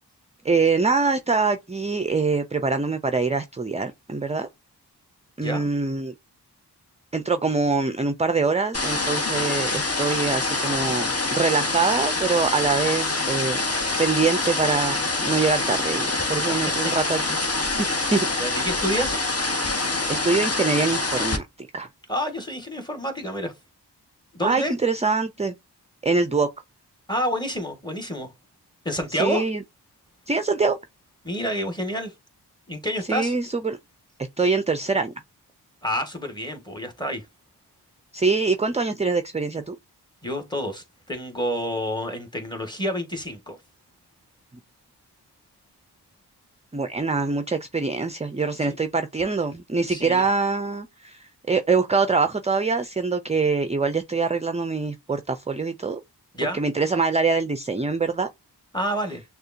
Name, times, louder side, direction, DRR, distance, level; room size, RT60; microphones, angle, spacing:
voice 1, 0.4-4.5 5.4-6.1 7.1-17.4 17.8-18.2 20.1-21.9 24.4-25.5 26.0-26.5 29.2-29.6 30.3-30.8 33.1-33.8 34.4-35.1 38.1-39.8 46.7-56.0 56.5-58.3, right 4 dB, 15° right, 0.4 m, -24 dB
sound 1, 8.7-21.4, left 2 dB, 35° left, 1.1 m, -25 dB
voice 2, 18.4-19.2 22.1-23.5 24.3-24.7 27.1-28.3 28.8-29.5 31.2-32.1 32.7-33.3 35.8-37.2 40.2-43.6 48.7-48.8 49.9-50.3 56.3-56.6 58.7-59.2, equal, 10° left, 1.5 m, -28 dB
6.5 x 2.4 x 2.6 m
wide cardioid pair, 55°, 41 cm